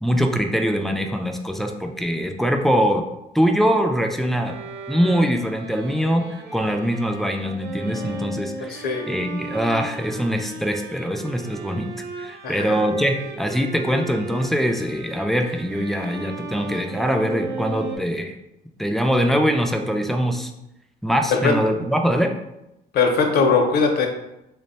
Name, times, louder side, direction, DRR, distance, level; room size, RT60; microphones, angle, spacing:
voice 1, 0.0-3.0 3.3-4.5 4.9-6.3 6.5-11.9 12.2-18.3 18.8-20.5 21.0-22.3, equal, ahead, 3 dB, 0.3 m, -23 dB
Bowed string instrument, 4.4-18.0, right 3 dB, 75° right, 0.6 m, -36 dB
voice 2, 8.7-9.0 12.4-12.8 21.3-21.5 22.9-24.1, left 4 dB, 70° left, 3 dB, 0.7 m, -20 dB
3.2 x 2.2 x 4.1 m, 0.88 s
cardioid pair, 110°, 17 cm